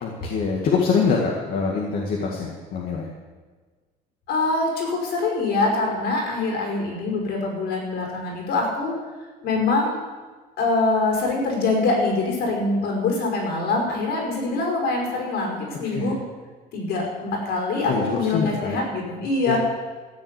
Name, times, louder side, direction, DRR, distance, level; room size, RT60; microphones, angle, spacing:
voice 1, 0.0-3.1 15.8-16.1 17.8-18.8 19.4-19.6, left 5 dB, 60° left, -1 dB, 2.1 m, -24 dB
voice 2, 4.3-8.9 9.4-10.0 10.6-16.1 16.7-19.6, left 3 dB, 75° left, 0 dB, 5.3 m, -24 dB
14.0 x 7.9 x 8.3 m, 1.4 s
cardioid pair, 110°, 17 cm